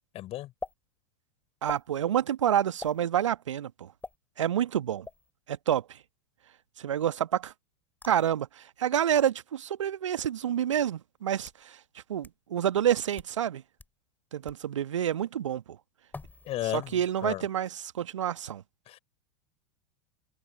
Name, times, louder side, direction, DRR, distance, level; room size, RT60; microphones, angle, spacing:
voice 1, 0.1-0.5 16.5-17.5 18.9-19.0, left 15 dB, 40° left, 5.1 m, -34 dB
sound 1, 0.6-0.7 1.6-1.9 2.8-3.0 4.0-4.2 5.0-5.3 8.0-8.3 9.1-9.3 10.2-10.3 11.2-11.6 12.2-12.3 13.0-13.3 13.8-13.9 14.5-14.6 16.1-16.5 16.8-17.2, left 3 dB, 10° left, 4.3 m, -43 dB
voice 2, 1.6-3.9 4.4-5.1 5.5-6.0 6.8-7.5 8.1-11.8 12.1-13.6 14.3-15.6 16.7-18.6, right 10 dB, 70° right, 1.4 m, -28 dB
figure-of-eight pair, 85°, 16 cm